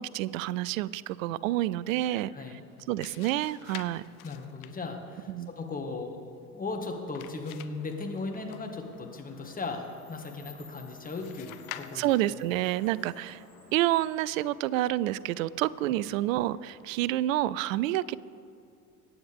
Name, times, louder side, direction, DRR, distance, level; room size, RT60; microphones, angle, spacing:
voice 1, 0.0-2.3 2.9-4.0 5.3-5.5 11.9-13.4 13.7-18.2, right 15 dB, 60° right, 20 dB, 0.5 m, -28 dB
voice 2, 2.0-2.6 4.2-5.3 5.6-6.2 6.5-12.1, left 3 dB, 20° left, 3 dB, 1.9 m, -37 dB
sound 1, 2.7-9.0 11.2-12.4, left 12 dB, 65° left, 0.8 m, -48 dB
sound 2, 7.6-16.9, left 3 dB, 85° left, 3.3 m, -55 dB
23.0 x 9.4 x 3.6 m, 2.4 s
figure-of-eight pair, 70°, 44 cm